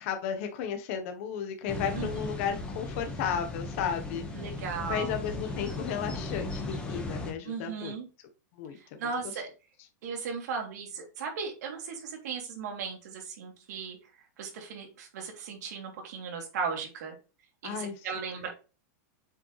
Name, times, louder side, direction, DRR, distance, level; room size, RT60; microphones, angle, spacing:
voice 1, 0.0-4.2 4.9-8.0 8.6-9.0 17.6-18.0, left 8 dB, 50° left, 6 dB, 1.2 m, -34 dB
sound 1, 1.7-7.3, left 2 dB, 10° left, 1.4 m, -36 dB
voice 2, 1.9-2.3 4.3-5.2 7.4-8.1 8.8-9.5 10.0-14.0 14.4-17.2 17.6-18.5, right 5 dB, 70° right, 1 dB, 3.1 m, -37 dB
7.5 x 5.1 x 3.3 m, 0.32 s
supercardioid pair, 165°, 9 cm